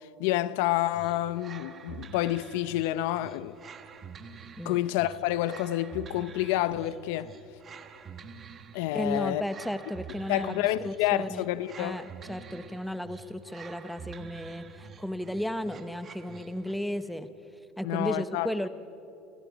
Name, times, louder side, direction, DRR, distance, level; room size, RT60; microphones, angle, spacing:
voice 1, 0.2-3.6 4.6-7.3 8.7-9.4 10.3-12.0 17.8-18.5, left 15 dB, 80° left, 0.7 m, -28 dB
sound 1, 0.9-16.9, right 5 dB, 30° right, 1.4 m, -47 dB
voice 2, 8.9-11.4 11.8-17.3 17.8-18.7, equal, ahead, 1.0 m, -34 dB
28.0 x 26.0 x 5.2 m
cardioid pair, 140°, 0 cm